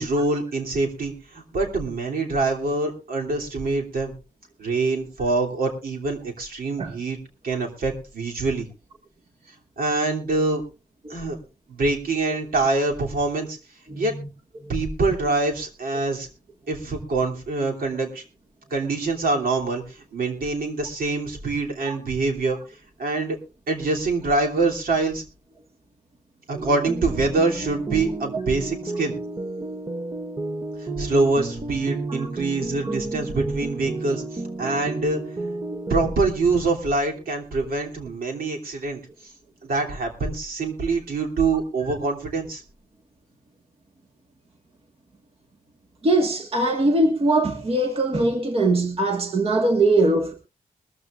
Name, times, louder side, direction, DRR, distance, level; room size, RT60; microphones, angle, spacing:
voice 1, 0.0-4.1 4.6-7.2 7.4-8.7 9.8-10.6 11.1-11.4 11.7-13.6 14.0-14.1 14.7-16.3 16.7-18.2 18.7-22.6 23.0-23.4 23.7-25.2 26.5-29.2 31.0-35.2 35.9-39.0 39.6-42.6, right 3 dB, 70° right, 3.1 m, -25 dB
sound 1, 26.5-36.1, right 2 dB, 25° right, 0.8 m, -31 dB
voice 2, 46.0-50.3, right 2 dB, 40° right, 1.7 m, -22 dB
21.5 x 14.0 x 2.5 m
wide cardioid pair, 150°, 15 cm